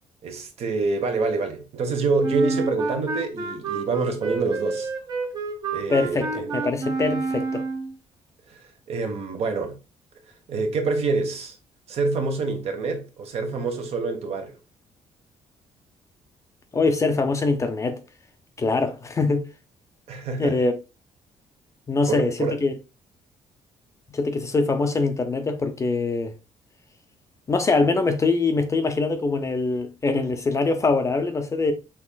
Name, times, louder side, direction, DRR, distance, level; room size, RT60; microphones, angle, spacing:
voice 1, 0.2-4.9 5.7-6.6 8.5-9.8 10.5-11.6 11.9-14.6 20.1-20.6 22.1-22.6, right 3 dB, 55° right, 1.1 m, -26 dB
Wind instrument woodwind instrument, 2.2-7.9, right 4 dB, 35° right, 1.0 m, -29 dB
voice 2, 5.9-7.6 16.7-18.0 18.6-19.5 20.4-20.7 21.9-22.7 24.1-26.3 27.5-31.7, left 3 dB, 25° left, 0.6 m, -23 dB
6.1 x 3.6 x 2.2 m
cardioid pair, 165°, 13 cm